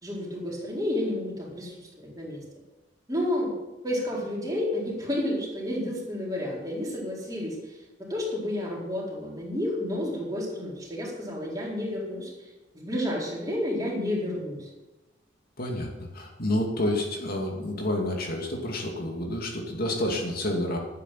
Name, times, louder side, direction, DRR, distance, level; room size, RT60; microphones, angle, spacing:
voice 1, 0.0-2.4 3.1-3.5 3.8-12.5 12.7-14.7, left 1 dB, 20° right, -4 dB, 4.2 m, -31 dB
voice 2, 15.6-20.8, left 1 dB, 50° left, 0 dB, 2.5 m, -29 dB
12.0 x 9.3 x 7.6 m, 1.1 s
head